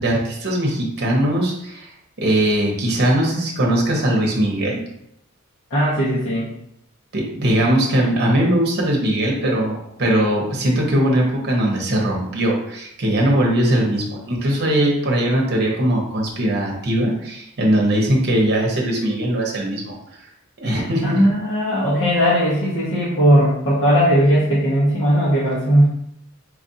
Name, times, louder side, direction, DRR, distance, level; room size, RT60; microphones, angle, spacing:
voice 1, 0.0-1.9 2.2-4.8 7.1-20.0 20.6-21.3, right 1 dB, 50° right, -1 dB, 0.9 m, -20 dB
voice 2, 5.7-6.5 20.6-25.9, equal, 60° left, -9 dB, 1.0 m, -18 dB
4.5 x 2.4 x 2.7 m, 0.77 s
head